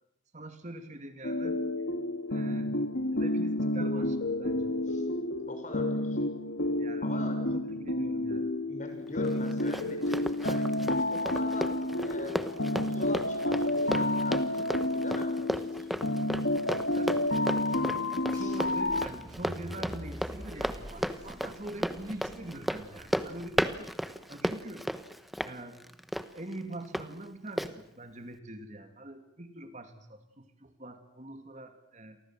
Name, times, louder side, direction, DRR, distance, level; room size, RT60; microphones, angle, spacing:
voice 1, 0.3-1.6 2.3-2.7 3.1-4.7 6.8-8.5 16.9-17.2 17.7-18.0 18.3-23.9 24.3-24.9 25.4-25.8 26.3-32.2, right 1 dB, 40° right, 7 dB, 2.5 m, -44 dB
sound 1, 1.2-19.1, left 1 dB, 70° left, 1.9 m, -30 dB
voice 2, 5.5-6.2 7.0-7.4 8.7-10.7 10.9-11.7 12.0-15.9 18.3-18.5, left 2 dB, 40° left, 6 dB, 6.1 m, -43 dB
Run, 9.2-27.1 27.6-27.7, equal, ahead, 1.1 m, -35 dB
sound 2, 18.3-23.8, equal, 20° right, 7.9 m, -46 dB
30.0 x 24.0 x 7.6 m, 0.77 s
head